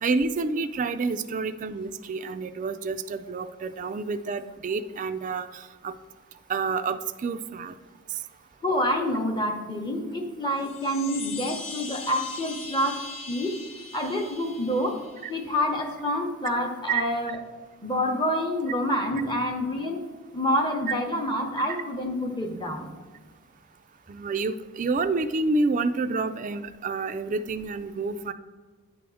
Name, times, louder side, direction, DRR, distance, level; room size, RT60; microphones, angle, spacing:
voice 1, 0.0-5.9 6.5-7.7 16.9-17.0 24.1-28.3, right 3 dB, 35° right, 9 dB, 0.3 m, -28 dB
voice 2, 8.6-13.0 13.3-13.6 13.9-15.0 15.3-17.4 17.8-20.0 20.3-22.9, equal, 20° left, 3 dB, 0.8 m, -27 dB
sound 1, 10.5-15.6, left 3 dB, 85° left, 1.3 m, -40 dB
9.9 x 3.5 x 6.2 m, 1.4 s
head